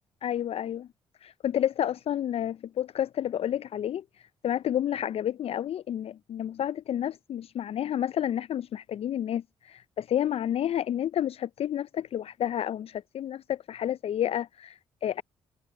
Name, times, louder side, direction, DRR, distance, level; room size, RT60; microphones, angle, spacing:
voice 1, 0.2-0.9 1.2-4.0 4.4-15.2, left 10 dB, 55° left, 0.4 m, -30 dB
hypercardioid pair, 50°, 12 cm